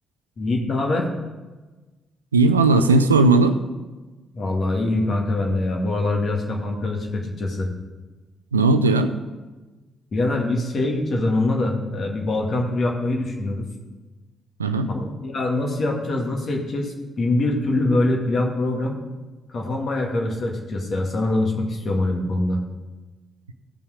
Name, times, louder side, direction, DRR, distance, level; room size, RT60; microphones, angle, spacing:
voice 1, 0.4-1.1 4.3-7.7 10.1-13.7 14.9-19.0 19.5-22.6, left 2 dB, 50° left, 1 dB, 2.1 m, -24 dB
voice 2, 2.3-3.6 8.5-9.1 14.6-14.9, right 3 dB, 90° right, 8 dB, 0.4 m, -17 dB
15.5 x 5.6 x 5.0 m, 1.2 s
figure-of-eight pair, 40°, 0 cm